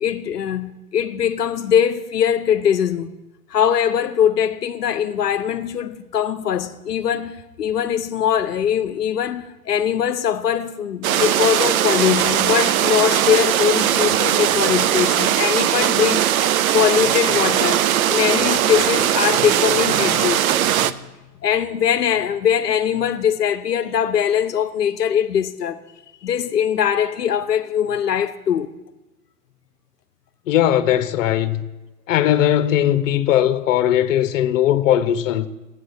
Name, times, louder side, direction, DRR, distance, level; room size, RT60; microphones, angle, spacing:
voice 1, 0.0-3.1 3.5-17.8 18.1-20.4 20.8-21.0 21.4-25.9 26.2-28.7, left 9 dB, 90° left, 0.6 m, -21 dB
sound 1, 11.0-20.9, right 11 dB, 65° right, 0.6 m, -19 dB
voice 2, 30.5-31.6 32.1-35.5, left 11 dB, 55° left, 0.8 m, -18 dB
7.7 x 6.3 x 7.9 m
figure-of-eight pair, 105°, 46 cm